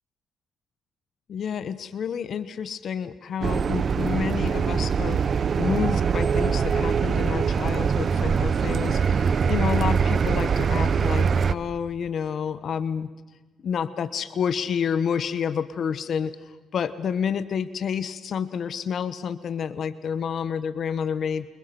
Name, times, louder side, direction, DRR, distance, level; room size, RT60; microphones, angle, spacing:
voice 1, 1.3-5.2 5.6-13.1 13.6-16.3 16.7-21.5, left 7 dB, 60° left, 14 dB, 1.2 m, -29 dB
sound 1, 3.4-11.5, right 6 dB, 50° right, 1.0 m, -23 dB
29.0 x 27.5 x 6.0 m, 1.2 s
cardioid pair, 90°, 0 cm